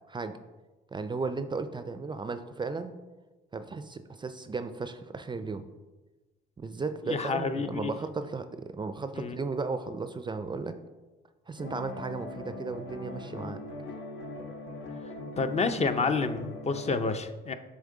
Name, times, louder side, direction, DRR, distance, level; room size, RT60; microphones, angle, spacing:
voice 1, 0.9-2.9 3.5-5.6 6.6-10.7 11.5-13.6, right 4 dB, 25° right, 9 dB, 0.4 m, -35 dB
voice 2, 7.0-7.9 9.1-9.4 15.4-17.5, left 4 dB, 35° left, 8 dB, 0.5 m, -29 dB
sound 1, 11.6-16.9, left 2 dB, 80° left, 0.9 m, -40 dB
7.0 x 3.7 x 3.8 m, 1.2 s
cardioid pair, 90°, 20 cm